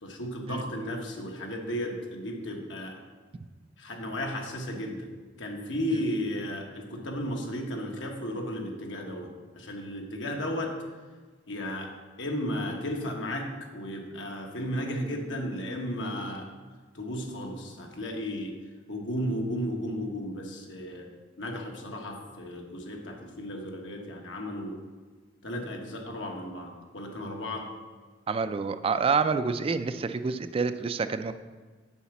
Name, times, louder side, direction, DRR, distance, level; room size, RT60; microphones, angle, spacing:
voice 1, 0.0-3.0 3.8-5.1 5.4-10.7 11.5-11.9 12.2-16.5 16.9-18.5 18.9-21.1 21.4-24.8 25.4-27.7, equal, 85° left, 1 dB, 1.4 m, -34 dB
voice 2, 28.3-31.3, right 5 dB, 30° right, 10 dB, 0.3 m, -27 dB
7.1 x 4.9 x 7.1 m, 1.4 s
head